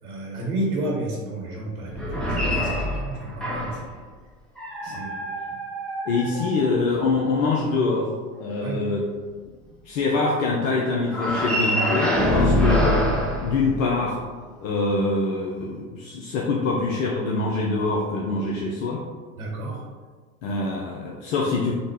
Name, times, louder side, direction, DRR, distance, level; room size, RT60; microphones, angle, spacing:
voice 1, 0.0-3.8 4.8-5.1 8.6-8.9 19.4-19.8, right 1 dB, 75° right, -2 dB, 1.4 m, -31 dB
sound 1, 1.9-3.9 4.6-7.0 11.1-14.2, equal, ahead, 0.5 m, -25 dB
voice 2, 6.1-8.1 8.4-9.1 9.8-13.1 13.4-14.2 14.6-19.0 20.4-21.7, left 3 dB, 60° left, -2 dB, 0.6 m, -24 dB
4.0 x 2.1 x 3.4 m, 1.5 s
hypercardioid pair, 85°, 44 cm